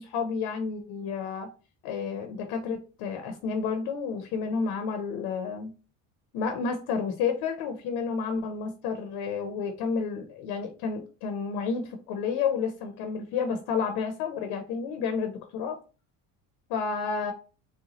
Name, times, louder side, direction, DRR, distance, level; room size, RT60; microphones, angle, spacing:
voice 1, 0.0-1.5 1.8-5.7 6.3-15.8 16.7-17.3, left 5 dB, 75° left, 6 dB, 0.7 m, -30 dB
4.1 x 2.2 x 2.9 m, 0.35 s
supercardioid pair, 100°, 40 cm